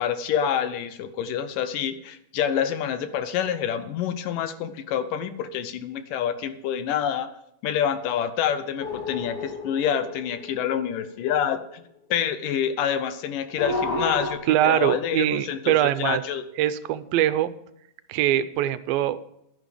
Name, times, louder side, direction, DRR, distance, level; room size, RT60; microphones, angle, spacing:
voice 1, 0.0-7.3 7.6-11.8 12.1-16.4, left 9 dB, 75° left, 10 dB, 2.3 m, -27 dB
sound 1, 8.8-11.3 13.6-14.3, left 2 dB, 55° left, 1.1 m, -31 dB
voice 2, 14.5-16.2 16.6-17.5 18.1-19.2, right 12 dB, 85° right, 13 dB, 2.4 m, -22 dB
11.0 x 10.5 x 5.1 m, 0.76 s
omnidirectional pair, 4.2 m